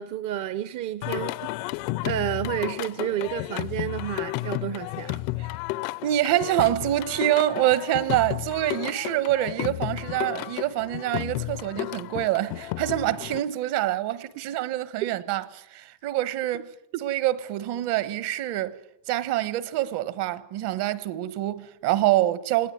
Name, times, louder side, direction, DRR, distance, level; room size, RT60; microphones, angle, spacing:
voice 1, 0.0-1.5 2.0-5.2, right 11 dB, 40° right, 0.8 m, -30 dB
Singing, 1.0-13.4, left 19 dB, 75° left, 0.8 m, -32 dB
voice 2, 6.0-18.8 19.1-22.7, right 14 dB, 55° right, 1.3 m, -26 dB
19.5 x 18.5 x 9.4 m
cardioid pair, 160°, 49 cm